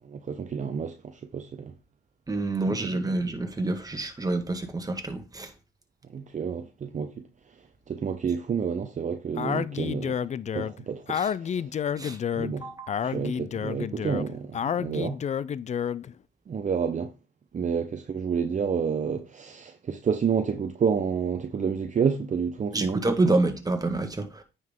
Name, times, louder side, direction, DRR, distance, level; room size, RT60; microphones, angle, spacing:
voice 1, 0.0-1.7 2.7-3.2 6.1-7.2 7.9-10.2 10.5-11.7 12.4-12.7 13.0-15.2 16.5-17.1 17.5-23.0, right 6 dB, 40° right, 0.7 m, -29 dB
voice 2, 2.3-5.5 11.1-11.3 12.0-12.2 12.6-12.9 22.7-24.4, right 2 dB, 20° right, 1.6 m, -27 dB
Speech, 9.4-16.1, left 8 dB, 35° left, 0.4 m, -30 dB
9.4 x 5.4 x 3.7 m
cardioid pair, 90°, 20 cm